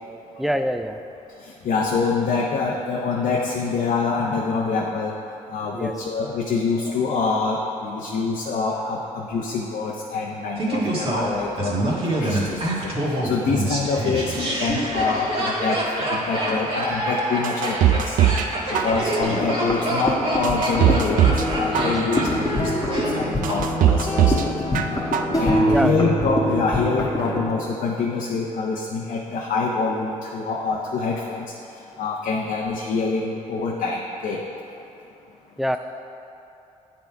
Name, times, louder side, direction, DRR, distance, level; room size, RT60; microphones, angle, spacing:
voice 1, 0.4-1.0 5.7-5.9 21.8-21.9 25.7-26.0 35.6-35.8, equal, ahead, 8 dB, 0.3 m, -24 dB
voice 2, 1.6-5.1 5.5-11.8 12.2-12.9 13.2-18.2 18.7-24.5 25.4-31.4 32.0-34.4, left 4 dB, 60° left, -1 dB, 0.7 m, -25 dB
Laughter, 10.6-23.6 23.8-23.9, right 1 dB, 40° right, 1.6 m, -26 dB
sound 1, 17.4-18.5 18.7-19.4 19.9-20.0 20.4-21.5 21.7-22.4 22.9-23.0 23.4-24.5 24.7-25.4 25.7-25.8, right 11 dB, 65° right, 0.4 m, -20 dB
sound 2, 19.2-27.5, equal, 25° left, 1.4 m, -25 dB
8.5 x 3.8 x 4.6 m, 3.0 s
supercardioid pair, 65°, 15 cm